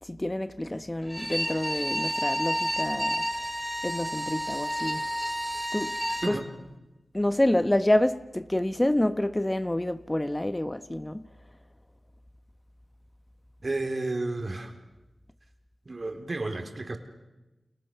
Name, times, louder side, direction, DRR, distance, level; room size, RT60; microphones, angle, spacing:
voice 1, 0.0-3.3 3.8-5.0 5.7-6.0 6.2-6.4 7.1-11.3, left 1 dB, 20° left, 1.2 m, -27 dB
Bowed string instrument, 1.0-6.4, equal, 5° left, 4.9 m, -30 dB
voice 2, 13.6-14.7 15.9-17.0, right 2 dB, 50° right, 4.3 m, -32 dB
29.5 x 29.0 x 6.9 m
cardioid pair, 40°, 0 cm